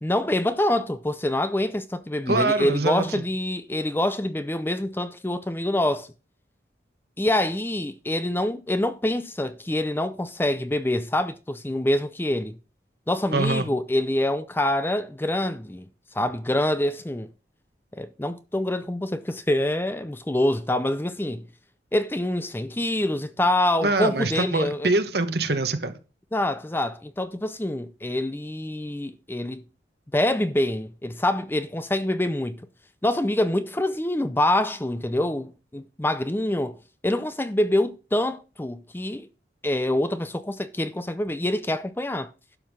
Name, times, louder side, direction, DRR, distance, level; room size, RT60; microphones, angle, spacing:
voice 1, 0.0-6.1 7.2-12.6 13.1-15.9 16.1-17.3 17.9-21.5 21.9-24.9 26.3-29.6 30.1-32.6 33.0-39.3 39.6-42.3, left 1 dB, 10° left, 0.5 m, -26 dB
voice 2, 2.3-3.2 13.3-13.7 23.8-25.9, right 2 dB, 60° right, 1.3 m, -24 dB
12.0 x 5.4 x 6.3 m
head